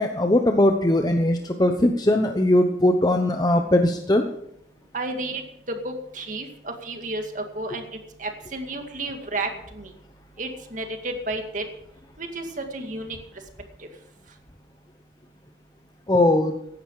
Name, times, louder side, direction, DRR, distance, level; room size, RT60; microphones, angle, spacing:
voice 1, 0.0-4.2 16.1-16.6, left 1 dB, 20° left, 5 dB, 0.9 m, -20 dB
voice 2, 4.9-5.4 5.7-7.8 8.2-9.5 9.7-9.9 10.4-11.6 12.2-13.2, right 2 dB, 45° right, 4 dB, 2.2 m, -31 dB
16.0 x 11.5 x 4.9 m, 0.74 s
head